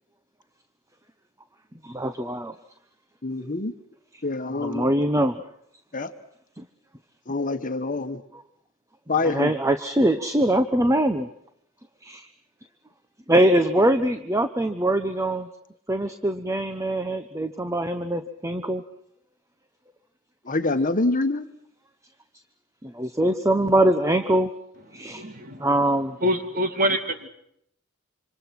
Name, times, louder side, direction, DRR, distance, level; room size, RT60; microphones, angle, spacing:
voice 1, 1.8-2.5 4.6-5.4 6.6-6.7 8.3-8.4 9.2-11.3 12.0-12.3 13.3-15.5 15.9-18.8 22.8-24.5 24.9-25.2 25.6-26.2, right 1 dB, 15° right, 9 dB, 1.0 m, -23 dB
voice 2, 3.2-3.7 4.2-4.9 5.9-6.1 7.3-8.2 9.1-9.5 20.5-21.4, left 3 dB, 40° left, 9 dB, 1.4 m, -25 dB
voice 3, 24.9-25.6 26.2-27.3, equal, 45° right, 7 dB, 2.6 m, -26 dB
27.0 x 26.0 x 6.0 m, 0.73 s
head